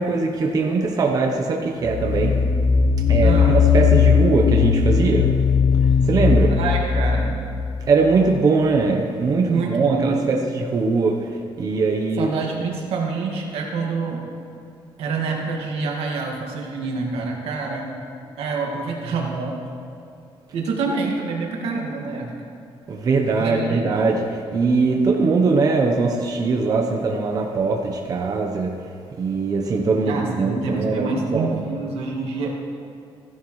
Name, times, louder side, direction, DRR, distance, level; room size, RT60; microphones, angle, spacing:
voice 1, 0.0-2.3 3.1-5.3 5.8-6.5 7.9-11.2 11.6-12.3 22.9-28.7 29.2-31.6, right 4 dB, 40° right, 1 dB, 0.9 m, -21 dB
sound 1, 1.8-8.5, left 6 dB, 50° left, 0.5 m, -18 dB
voice 2, 3.2-3.6 5.8-5.9 6.5-7.4 9.5-10.3 12.2-14.2 15.0-18.0 18.4-19.6 20.5-22.3 23.4-23.8 30.0-32.5, right 4 dB, 85° right, 0 dB, 1.9 m, -26 dB
15.5 x 11.0 x 3.2 m, 2.6 s
cardioid pair, 145°, 10 cm